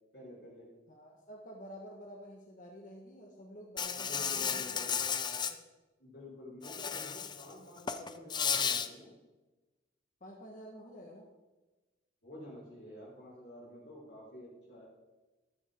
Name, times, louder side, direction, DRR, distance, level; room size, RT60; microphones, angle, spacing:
voice 1, 0.1-0.7 3.9-4.9 6.0-9.1 12.2-14.9, left 1 dB, 60° left, -9 dB, 4.8 m, -49 dB
voice 2, 0.9-5.6 10.2-11.2, equal, 45° left, -1 dB, 1.8 m, -50 dB
Insect, 3.8-5.5 6.6-7.4 7.8-8.9, left 7 dB, 25° left, 0.6 m, -33 dB
13.5 x 13.5 x 3.9 m, 1.2 s
head